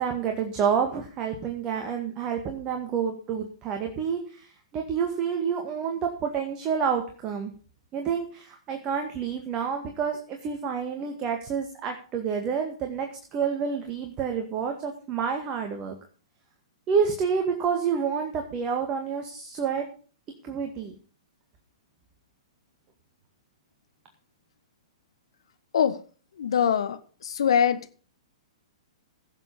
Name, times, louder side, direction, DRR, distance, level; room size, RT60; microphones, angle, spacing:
voice 1, 0.0-7.5 7.9-16.0 16.9-19.9 20.4-21.0, right 6 dB, 25° right, 4 dB, 1.9 m, -29 dB
voice 2, 26.4-27.9, left 8 dB, 60° left, 12 dB, 1.2 m, -23 dB
16.5 x 7.4 x 5.4 m, 0.40 s
figure-of-eight pair, 110°, 3 cm